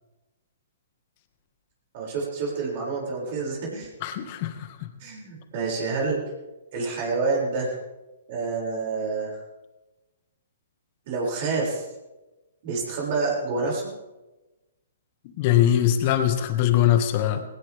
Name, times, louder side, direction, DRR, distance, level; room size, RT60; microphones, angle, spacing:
voice 1, 1.9-3.9 5.0-6.2 6.7-7.8 8.3-9.4 11.1-11.8 12.6-13.9, right 4 dB, 45° right, -3 dB, 6.9 m, -28 dB
voice 2, 4.0-4.9 15.2-17.4, left 11 dB, 40° left, 7 dB, 2.0 m, -22 dB
18.5 x 18.5 x 3.7 m, 1.1 s
hypercardioid pair, 140°, 0 cm